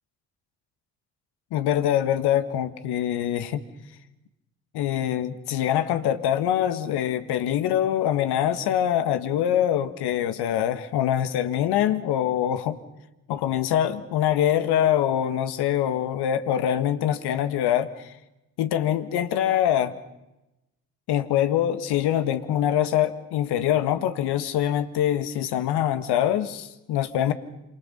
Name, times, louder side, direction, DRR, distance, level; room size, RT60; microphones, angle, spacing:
voice 1, 1.5-3.6 4.7-12.8 13.3-18.1 18.6-19.9 21.1-27.3, left 11 dB, 70° left, 1.7 m, -24 dB
28.0 x 27.0 x 5.5 m
hypercardioid pair, 40°, 42 cm